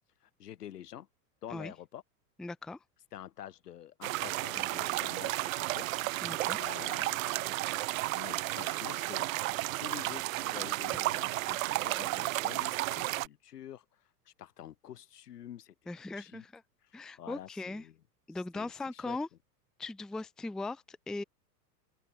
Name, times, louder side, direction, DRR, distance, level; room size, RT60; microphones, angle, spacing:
voice 1, 0.2-1.1 1.4-2.0 3.1-5.9 6.6-7.8 8.1-13.9 14.3-15.8 16.1-16.5 16.8-18.0 18.5-19.2, left 11 dB, 75° left, 1.7 m, -48 dB
voice 2, 2.4-2.8 6.2-6.6 15.9-16.6 16.9-17.8 18.3-19.3 19.8-21.2, left 2 dB, ahead, 0.5 m, -39 dB
sound 1, 4.0-13.3, right 19 dB, 60° right, 0.5 m, -33 dB
open air
hypercardioid pair, 95°, 48 cm